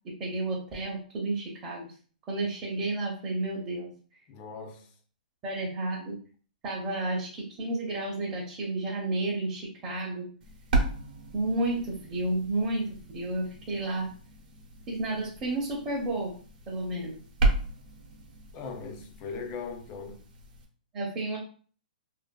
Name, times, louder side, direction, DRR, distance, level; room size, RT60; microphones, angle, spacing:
voice 1, 0.0-1.9 2.3-4.2 5.4-6.2 6.6-10.3 11.3-14.1 14.9-16.3 16.7-17.2 20.9-21.4, right 2 dB, 25° right, 0.6 m, -31 dB
voice 2, 4.3-4.9 18.5-20.2, left 5 dB, 25° left, 0.4 m, -39 dB
sound 1, 10.4-20.7, right 2 dB, 70° right, 0.8 m, -34 dB
2.5 x 2.3 x 2.2 m
hypercardioid pair, 155°, 5 cm